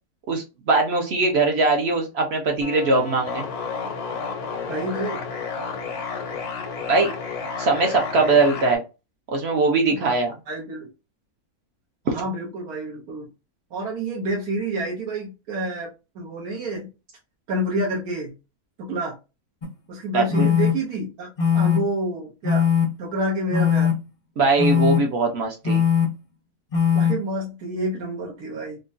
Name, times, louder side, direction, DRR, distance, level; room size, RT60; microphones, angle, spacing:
voice 1, 0.3-3.5 6.9-7.1 7.6-8.8 9.3-10.3 12.1-12.2 20.1-20.5 24.4-25.8, right 3 dB, 55° right, 2 dB, 0.8 m, -21 dB
sound 1, 2.6-8.8, left 5 dB, 85° left, 1.3 m, -31 dB
voice 2, 4.7-5.2 10.0-10.1 10.5-10.9 12.0-13.3 13.7-15.9 16.1-16.9 17.5-18.3 18.8-19.1 19.9-22.7 23.0-23.9 26.9-28.8, right 1 dB, 85° right, -3 dB, 1.4 m, -28 dB
sound 2, 19.6-19.7 20.3-20.7 21.4-21.8 22.4-22.8 23.5-23.9 24.6-25.0 25.6-26.1 26.7-27.1, left 7 dB, 55° left, 0.3 m, -19 dB
3.6 x 2.2 x 2.5 m, 0.28 s
omnidirectional pair, 1.6 m